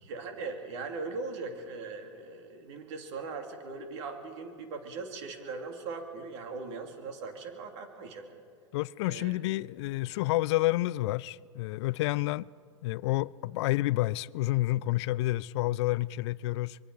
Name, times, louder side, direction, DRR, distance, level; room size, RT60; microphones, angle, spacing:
voice 1, 0.1-8.2 9.0-9.4, right 4 dB, 65° right, 3.0 m, -39 dB
voice 2, 8.7-12.5 12.8-16.8, left 18 dB, 60° left, 0.4 m, -29 dB
25.5 x 22.5 x 4.8 m
hypercardioid pair, 95°, 16 cm